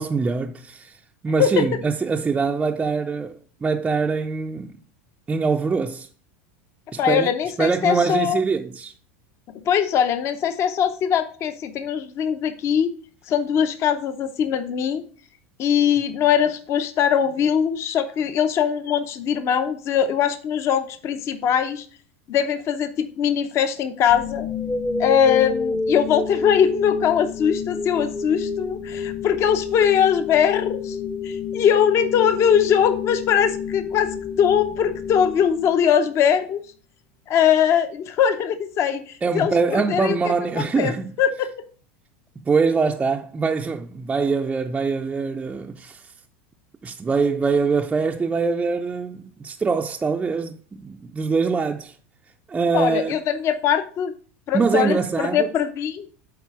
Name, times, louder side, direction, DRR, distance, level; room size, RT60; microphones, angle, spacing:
voice 1, 0.0-4.8 5.3-6.1 6.9-7.3 7.6-8.9 39.2-41.2 42.4-46.1 46.8-52.0 52.5-53.2 54.5-55.5, right 4 dB, 15° right, 0.4 m, -23 dB
voice 2, 7.0-8.4 9.7-12.9 13.3-15.0 15.6-21.8 22.3-24.5 25.0-31.0 31.2-36.6 37.3-40.2 40.5-40.9 41.2-41.5 52.7-54.1 54.5-56.1, left 8 dB, 45° left, 0.7 m, -21 dB
sound 1, 24.1-36.1, left 5 dB, 15° left, 0.7 m, -29 dB
8.2 x 4.1 x 4.8 m
hypercardioid pair, 100°, 7 cm